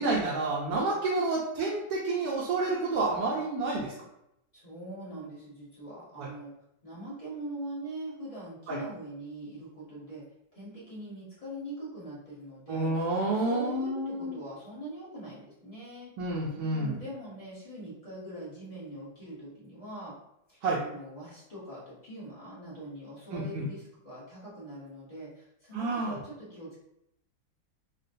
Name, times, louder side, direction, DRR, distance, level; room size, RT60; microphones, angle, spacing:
voice 1, 0.0-3.9 6.2-6.3 8.7-8.8 12.7-14.4 16.2-17.0 20.6-20.8 23.3-23.6 25.7-26.2, right 2 dB, 70° right, -5 dB, 1.1 m, -29 dB
voice 2, 4.5-6.5 6.8-10.2 10.5-12.9 13.3-16.1 16.6-20.1 20.5-26.8, right 1 dB, 30° left, -8 dB, 0.7 m, -42 dB
3.7 x 2.2 x 2.5 m, 0.81 s
omnidirectional pair, 2.2 m